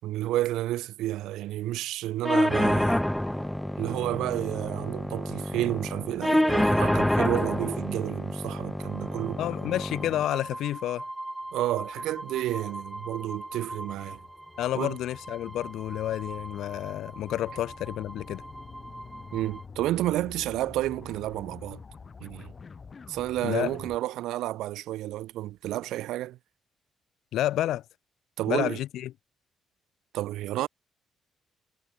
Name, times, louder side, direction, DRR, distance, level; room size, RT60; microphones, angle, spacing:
voice 1, 0.0-3.0 3.8-9.4 11.5-14.2 14.7-15.0 19.3-21.8 22.2-22.5 23.1-26.4 28.4-28.8 30.1-30.7, right 15 dB, 90° right, 4.1 m, -31 dB
sound 1, 2.2-10.2, left 1 dB, 5° left, 2.4 m, -27 dB
sound 2, 8.8-19.6, right 1 dB, 10° right, 3.6 m, -42 dB
voice 2, 9.4-11.0 14.6-18.4 23.4-23.7 27.3-27.8 28.5-29.1, left 13 dB, 80° left, 0.8 m, -30 dB
sound 3, 11.5-24.0, left 5 dB, 35° left, 7.3 m, -48 dB
cardioid pair, 90°, 0 cm